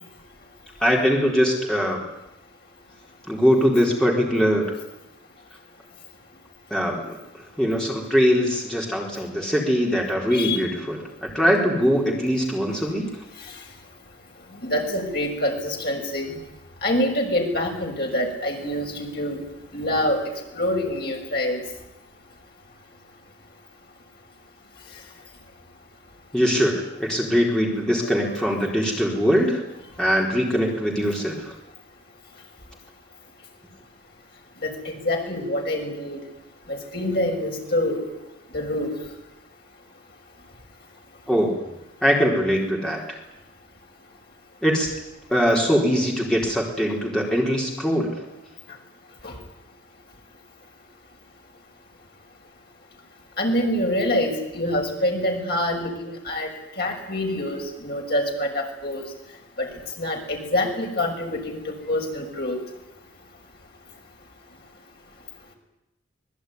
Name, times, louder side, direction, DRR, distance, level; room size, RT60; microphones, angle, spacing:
voice 1, 0.8-2.0 3.3-4.7 6.7-7.2 7.6-13.1 26.3-29.6 30.0-31.5 41.3-41.5 42.0-43.0 44.6-45.0 45.3-48.1, equal, 5° left, -2 dB, 4.3 m, -22 dB
voice 2, 14.6-16.4 16.8-19.4 19.7-20.2 20.5-21.6 28.0-28.4 34.6-36.2 36.7-38.0 38.5-38.9 49.2-49.3 53.4-56.5 56.8-59.1 59.6-59.7 60.0-62.6, left 1 dB, 55° left, 1 dB, 6.1 m, -26 dB
25.5 x 20.5 x 9.7 m, 0.91 s
head